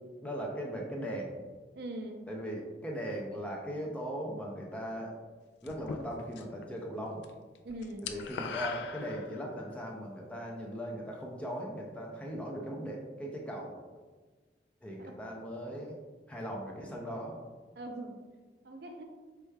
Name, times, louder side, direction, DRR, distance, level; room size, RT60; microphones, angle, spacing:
voice 1, 0.2-1.4 2.3-5.1 5.6-7.2 8.0-13.8 14.8-16.0 16.3-17.4, equal, 5° left, -1 dB, 0.5 m, -39 dB
voice 2, 1.7-2.2 7.6-8.0 15.0-15.1 17.8-18.2 18.6-19.0, right 1 dB, 60° right, 4 dB, 0.5 m, -41 dB
sound 1, 5.7-6.6 6.9-9.6, left 5 dB, 70° left, 0.3 m, -40 dB
4.7 x 4.4 x 2.2 m, 1.4 s
head